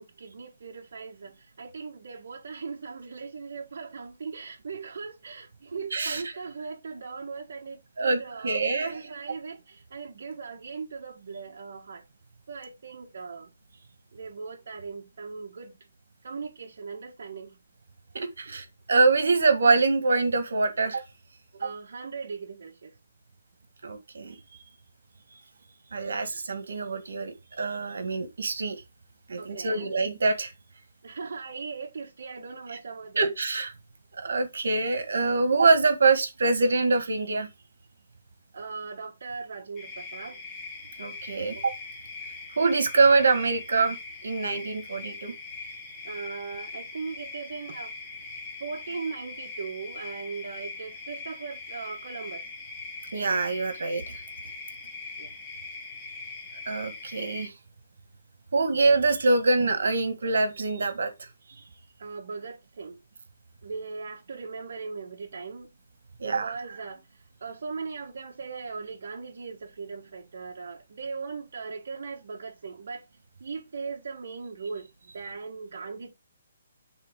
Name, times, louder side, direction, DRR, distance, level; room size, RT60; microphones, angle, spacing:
voice 1, 0.0-12.0 12.5-13.5 14.1-15.7 16.2-17.6 18.5-18.6 21.6-22.9 29.4-29.9 31.0-33.3 38.5-40.4 46.0-47.9 48.6-52.4 55.2-55.3 62.0-63.0 63.6-65.7 66.2-67.0 67.4-73.0 73.4-76.1, right 4 dB, 55° right, 1.5 m, -39 dB
voice 2, 5.9-6.3 8.0-8.9 18.1-21.0 21.6-21.7 23.8-24.4 25.9-28.8 29.3-30.5 33.1-33.7 34.2-37.5 41.0-41.7 42.6-44.0 44.2-45.3 53.1-54.2 56.6-57.5 58.5-61.1 66.2-66.5, right 3 dB, 75° right, 1.7 m, -24 dB
sound 1, 39.8-57.5, left 4 dB, 10° left, 1.0 m, -41 dB
8.9 x 4.0 x 3.7 m
hypercardioid pair, 175°, 0 cm